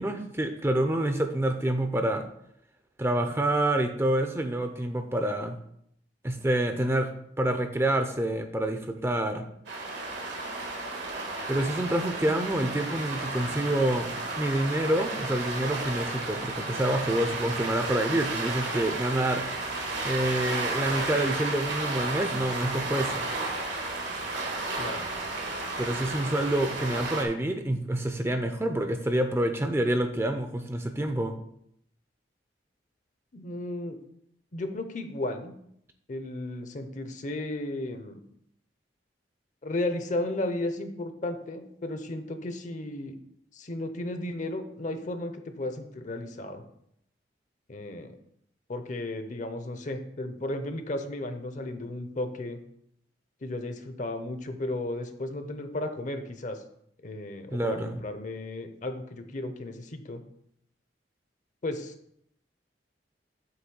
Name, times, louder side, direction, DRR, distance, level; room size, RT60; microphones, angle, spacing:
voice 1, 0.0-2.3 3.0-5.6 6.2-7.1 7.4-9.5 11.5-19.4 20.0-23.3 25.8-31.4 57.5-58.0, right 1 dB, 15° right, 6 dB, 0.5 m, -27 dB
sound 1, 9.7-27.3, right 2 dB, 75° right, 1.5 m, -33 dB
voice 2, 24.8-25.1 33.3-34.0 34.5-35.6 36.1-38.2 39.6-43.2 43.5-46.6 47.7-48.1 48.7-52.6 53.4-56.6 57.0-60.2 61.6-61.9, left 1 dB, 45° left, 8 dB, 0.7 m, -34 dB
7.9 x 3.2 x 6.2 m, 0.72 s
head